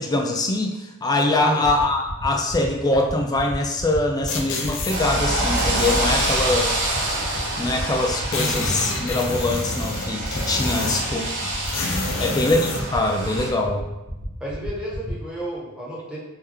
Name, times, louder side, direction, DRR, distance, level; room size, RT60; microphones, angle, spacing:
voice 1, 0.0-6.7 7.6-11.2 12.2-12.6 12.9-13.9, left 2 dB, 20° left, 2 dB, 0.3 m, -23 dB
sound 1, 1.6-15.1, left 1 dB, 80° right, 1.4 m, -38 dB
sound 2, 4.3-5.0 5.6-6.4 7.3-7.4 7.7-7.8 8.0-11.2 11.6-12.9, left 2 dB, 60° left, 0.6 m, -28 dB
sound 3, 4.9-13.5, right 1 dB, 60° right, 1.0 m, -27 dB
voice 2, 14.4-16.2, right 1 dB, 5° right, -7 dB, 1.1 m, -32 dB
3.5 x 2.9 x 3.4 m, 0.97 s
head